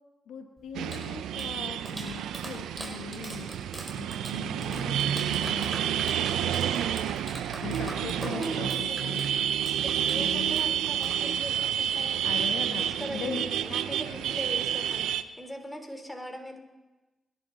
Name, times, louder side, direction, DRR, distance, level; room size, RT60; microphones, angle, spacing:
voice 1, 0.3-3.5 3.9-7.1 7.6-9.2 10.1-10.6 12.2-13.4, left 7 dB, 85° left, 5 dB, 1.2 m, -40 dB
Clapping, 0.6-11.7, right 1 dB, 15° right, 4.8 m, -43 dB
sound 1, 0.7-15.2, right 10 dB, 90° right, 0.5 m, -29 dB
voice 2, 8.0-9.1 9.8-16.6, equal, 10° left, 4 dB, 3.3 m, -40 dB
27.0 x 11.5 x 3.9 m, 1.2 s
supercardioid pair, 50°, 0 cm